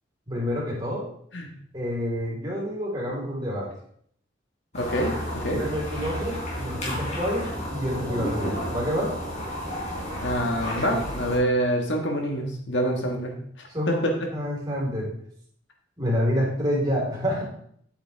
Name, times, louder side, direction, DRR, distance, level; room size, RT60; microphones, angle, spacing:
voice 1, 0.3-1.0 1.7-3.7 5.5-9.1 13.7-14.0 14.3-15.1 16.0-17.4, equal, 20° right, -5 dB, 4.0 m, -28 dB
voice 2, 4.7-5.6 10.2-14.2, equal, 60° left, 2 dB, 1.6 m, -26 dB
sound 1, 4.7-11.4, equal, 35° left, 4.5 m, -32 dB
10.5 x 8.7 x 3.5 m, 0.65 s
head